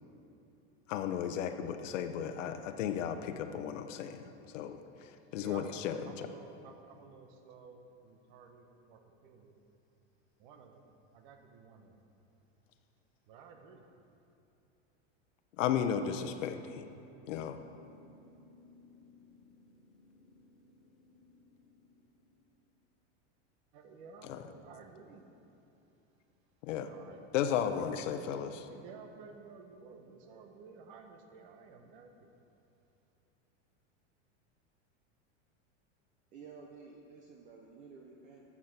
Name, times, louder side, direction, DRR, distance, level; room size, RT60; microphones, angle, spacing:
voice 1, 0.9-6.3 15.6-16.9 17.3-17.6 24.3-24.4 26.6-26.9 27.3-28.6, left 8 dB, 85° left, 7 dB, 0.8 m, -35 dB
voice 2, 5.4-9.5 10.4-10.8 11.1-12.0 13.3-13.9 23.7-25.3 26.8-27.3 27.9-32.3, right 5 dB, 45° right, 4 dB, 1.0 m, -53 dB
sound 1, 17.4-22.6, left 3 dB, ahead, 1.4 m, -61 dB
voice 3, 36.3-38.4, right 5 dB, 20° right, 0 dB, 0.5 m, -52 dB
13.0 x 7.3 x 5.9 m, 2.8 s
supercardioid pair, 175°, 37 cm